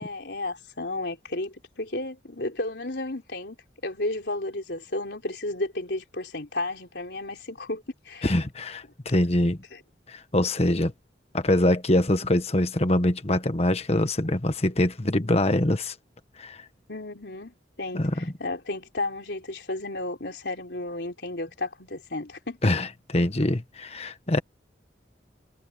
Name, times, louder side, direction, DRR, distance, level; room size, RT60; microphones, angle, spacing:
voice 1, 0.0-3.6 3.8-8.3 9.7-9.8 16.9-22.7, left 2 dB, 70° left, 3.8 m, -33 dB
voice 2, 8.2-9.6 10.1-10.9 11.3-15.9 16.4-16.6 17.9-18.1 22.6-22.9 23.1-24.4, left 1 dB, 35° left, 1.4 m, -24 dB
head